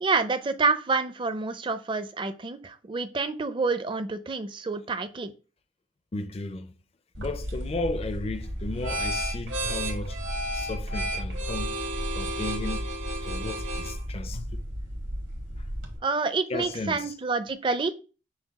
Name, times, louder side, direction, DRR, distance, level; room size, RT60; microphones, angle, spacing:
voice 1, 0.0-5.3 16.0-17.9, right 4 dB, 25° right, 0.4 m, -28 dB
voice 2, 6.1-6.7 7.2-10.2 10.5-11.7 12.1-12.9 13.2-14.6 16.5-17.1, left 2 dB, 35° left, 0.4 m, -34 dB
sound 1, 7.1-16.0, equal, 85° right, 1.4 m, -32 dB
5.9 x 2.3 x 4.0 m
head